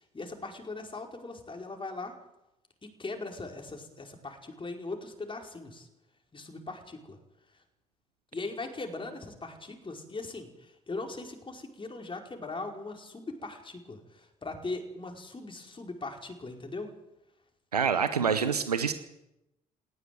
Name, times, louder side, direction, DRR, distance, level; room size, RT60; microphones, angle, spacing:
voice 1, 0.1-2.1 3.0-5.9 6.3-7.2 8.3-10.5 10.9-16.9, left 3 dB, 25° left, 3 dB, 5.0 m, -39 dB
voice 2, 17.7-18.9, right 6 dB, 90° right, 11 dB, 0.8 m, -26 dB
18.5 x 17.5 x 9.7 m, 0.89 s
figure-of-eight pair, 45°, 19 cm